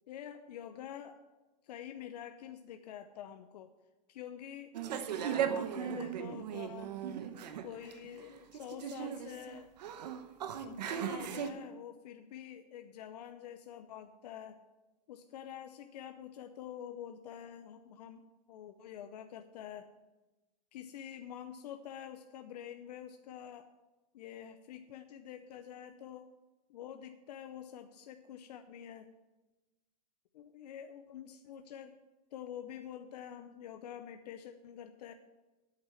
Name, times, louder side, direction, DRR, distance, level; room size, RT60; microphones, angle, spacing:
voice 1, 0.1-1.2 1.6-3.7 4.1-4.7 5.1-6.9 7.6-9.7 10.6-14.6 15.1-19.9 20.7-23.7 24.1-26.3 26.7-29.1 30.3-32.0 32.3-35.1, left 9 dB, 75° left, 8 dB, 0.7 m, -47 dB
sound 1, 4.7-11.5, right 8 dB, 90° right, 1.0 m, -37 dB
8.6 x 7.6 x 7.1 m, 1.1 s
supercardioid pair, 145°, 21 cm